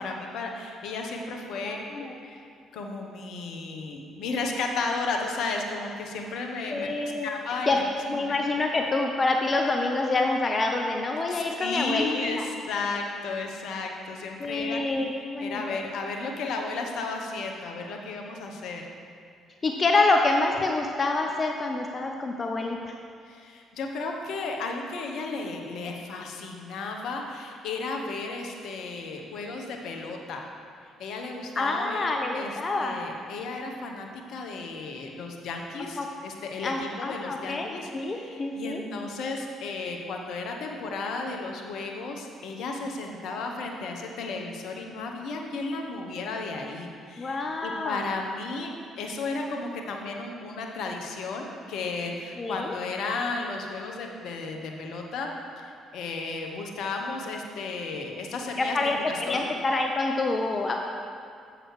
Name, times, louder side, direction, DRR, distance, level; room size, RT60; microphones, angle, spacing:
voice 1, 0.0-6.9 7.2-7.8 8.1-8.3 11.3-14.8 15.2-18.9 23.2-30.5 31.0-59.4, left 3 dB, 70° left, 2 dB, 1.0 m, -34 dB
voice 2, 1.6-2.1 6.7-7.3 7.7-7.8 8.1-12.4 14.4-15.8 19.6-22.9 31.6-33.1 36.0-36.1 36.6-38.8 47.2-48.0 52.4-52.7 58.6-60.7, left 3 dB, 40° left, 2 dB, 0.7 m, -27 dB
7.8 x 6.5 x 4.7 m, 2.4 s
hypercardioid pair, 55°, 0 cm